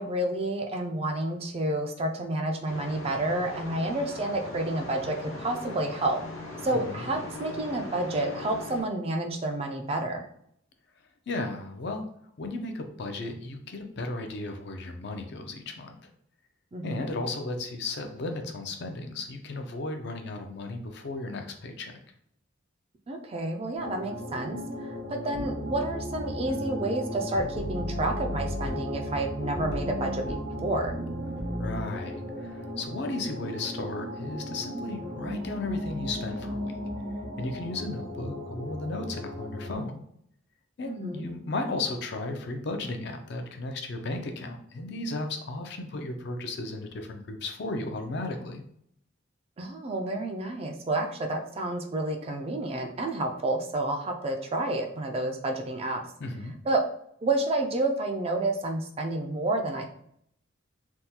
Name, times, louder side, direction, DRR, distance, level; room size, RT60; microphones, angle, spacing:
voice 1, 0.0-6.2 6.6-10.3 16.7-17.2 23.1-24.9 25.2-30.9 40.9-41.3 49.6-56.0 56.7-56.8 57.2-59.9, right 2 dB, 30° right, 3 dB, 0.3 m, -30 dB
sound 1, 2.6-8.8, left 2 dB, 85° left, 0.8 m, -40 dB
voice 2, 6.7-7.1 11.3-12.1 12.4-16.0 16.8-21.9 31.6-36.8 37.4-40.0 40.8-48.6 56.2-56.5, left 2 dB, 55° left, 5 dB, 0.4 m, -35 dB
sound 2, 23.8-39.7, left 1 dB, 75° right, 1.2 m, -37 dB
sound 3, 25.3-31.8, equal, 60° right, 0.8 m, -35 dB
3.5 x 2.2 x 2.8 m, 0.70 s
head